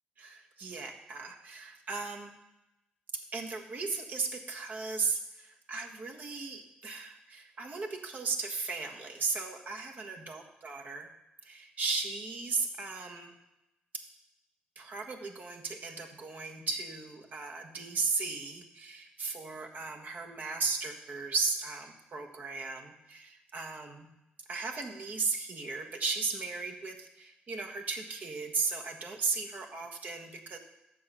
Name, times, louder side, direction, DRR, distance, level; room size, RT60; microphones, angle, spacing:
voice 1, 0.2-2.3 3.3-11.1 11.4-13.3 14.7-24.1 24.5-30.6, right 4 dB, 50° right, 2 dB, 1.3 m, -36 dB
7.6 x 6.1 x 5.6 m, 0.93 s
cardioid pair, 85°, 4 cm